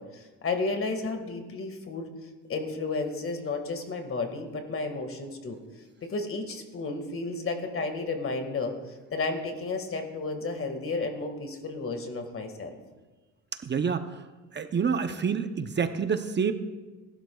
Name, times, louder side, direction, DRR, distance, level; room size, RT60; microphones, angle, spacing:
voice 1, 0.0-2.1 2.5-5.6 6.0-8.8 9.1-12.7, left 3 dB, 45° left, 5 dB, 1.9 m, -32 dB
voice 2, 13.6-14.2 14.5-16.5, right 6 dB, 35° right, 9 dB, 0.7 m, -28 dB
18.5 x 12.0 x 2.4 m, 1.3 s
cardioid pair, 90°, 30 cm